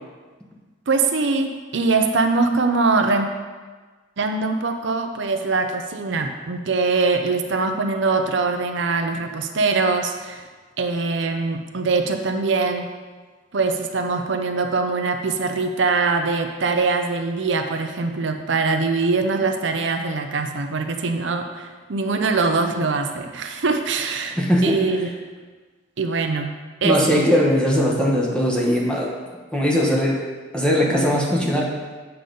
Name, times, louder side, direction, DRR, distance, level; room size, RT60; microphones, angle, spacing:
voice 1, 0.9-3.3 4.2-10.5 10.8-12.8 13.5-25.1 26.0-26.5 26.8-27.2, right 4 dB, 65° right, 5 dB, 0.6 m, -22 dB
voice 2, 24.4-24.8 26.8-29.1 29.5-30.2 30.5-31.7, equal, 5° left, -3 dB, 1.1 m, -19 dB
8.4 x 6.7 x 3.9 m, 1.4 s
head